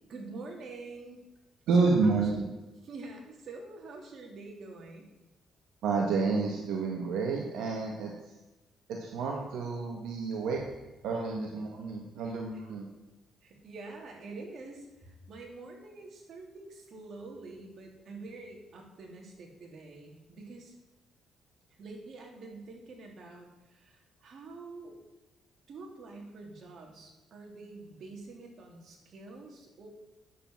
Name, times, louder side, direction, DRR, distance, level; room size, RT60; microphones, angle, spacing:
voice 1, 0.1-1.2 1.7-2.2 2.8-5.1 12.3-12.4 13.4-20.7 21.8-25.0 25.7-29.9, right 3 dB, 60° right, 1 dB, 3.1 m, -46 dB
voice 2, 1.7-2.5 5.8-8.1 8.9-10.6 11.0-12.9, right 4 dB, 85° right, 0 dB, 1.5 m, -29 dB
10.0 x 7.7 x 6.2 m, 1.0 s
cardioid pair, 90°, 0 cm